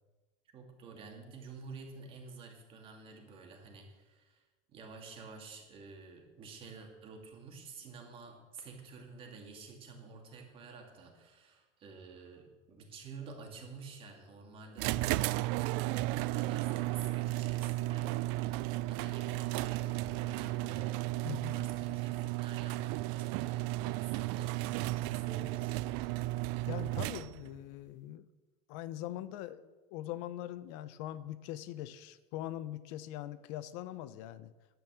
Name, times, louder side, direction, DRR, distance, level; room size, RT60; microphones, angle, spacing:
voice 1, 0.5-4.4 4.7-15.1 16.1-21.0 21.3-25.8, right 4 dB, 35° right, 2 dB, 2.4 m, -50 dB
sound 1, 14.8-27.6, right 17 dB, 75° right, 0.4 m, -34 dB
voice 2, 21.2-21.5 26.7-28.3 28.7-34.5, left 13 dB, 80° left, 14 dB, 0.8 m, -42 dB
10.5 x 9.5 x 7.3 m, 1.2 s
cardioid pair, 170°, 15 cm